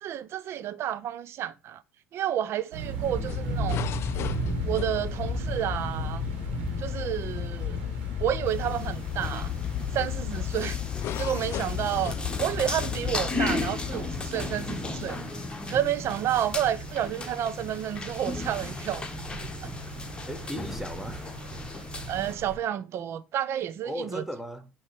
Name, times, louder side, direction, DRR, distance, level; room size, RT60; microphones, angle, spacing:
voice 1, 0.0-1.8 2.1-3.9 4.7-6.2 6.8-7.8 8.2-9.5 9.9-10.8 11.2-15.2 15.7-19.0 19.3-19.4 22.1-24.2, right 11 dB, 50° right, 0.6 m, -30 dB
sound 1, 2.7-22.6, right 4 dB, 75° right, 1.7 m, -38 dB
voice 2, 2.8-3.4 20.3-21.2 23.8-24.7, right 1 dB, 5° right, 1.3 m, -37 dB
sound 2, 3.0-15.2, left 11 dB, 50° left, 0.4 m, -33 dB
sound 3, 8.5-22.3, left 3 dB, 15° left, 1.3 m, -36 dB
8.5 x 3.1 x 4.7 m
hypercardioid pair, 65°, 6 cm